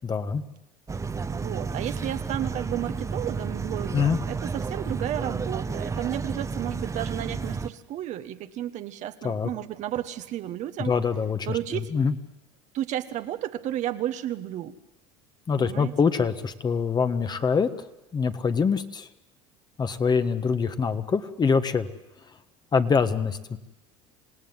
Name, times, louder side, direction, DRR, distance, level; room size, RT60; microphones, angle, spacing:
voice 1, 0.0-0.4 3.9-4.2 9.2-9.5 10.8-12.1 15.5-17.7 18.1-19.1 19.8-21.9 22.7-23.6, left 5 dB, 30° left, 10 dB, 1.5 m, -24 dB
sound 1, 0.9-7.7, right 4 dB, 20° right, 1.1 m, -31 dB
voice 2, 1.3-10.9 11.5-11.9 12.7-14.7 15.5-15.9, right 12 dB, 55° right, 10 dB, 1.4 m, -32 dB
27.0 x 17.5 x 9.7 m, 0.98 s
supercardioid pair, 90°, 15 cm